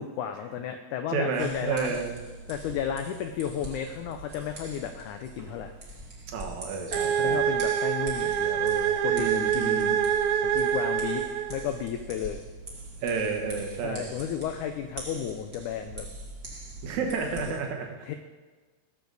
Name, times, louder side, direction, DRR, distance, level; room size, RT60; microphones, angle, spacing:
voice 1, 0.0-2.0 2.5-5.7 7.0-10.0 10.4-11.2 11.5-12.4 13.8-16.1 17.4-17.6 18.0-18.1, left 9 dB, 85° left, 6 dB, 1.8 m, -33 dB
voice 2, 1.1-2.1 6.3-7.4 9.1-10.1 13.0-14.1 16.8-17.9, right 5 dB, 60° right, 2 dB, 2.3 m, -31 dB
sound 1, 1.4-17.6, right 2 dB, 35° right, 1.8 m, -43 dB
sound 2, 6.9-11.8, right 9 dB, 80° right, 1.6 m, -26 dB
18.0 x 6.9 x 4.0 m, 1.3 s
omnidirectional pair, 4.1 m